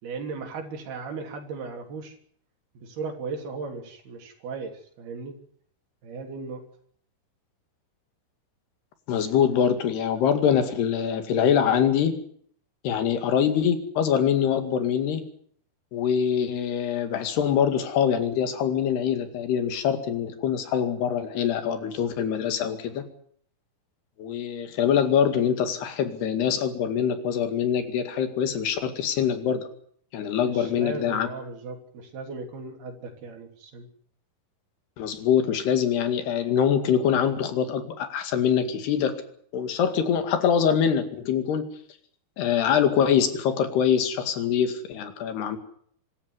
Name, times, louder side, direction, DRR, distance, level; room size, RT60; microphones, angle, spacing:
voice 1, 0.0-2.2 2.8-5.4 6.0-6.6 30.4-33.9, right 4 dB, 75° right, 3 dB, 5.3 m, -36 dB
voice 2, 9.1-12.2 12.8-15.2 15.9-23.0 24.2-29.7 30.1-31.3 35.0-39.2 39.5-41.7 42.4-45.6, left 8 dB, 85° left, 8 dB, 4.3 m, -24 dB
25.0 x 13.5 x 9.6 m, 0.62 s
omnidirectional pair, 4.5 m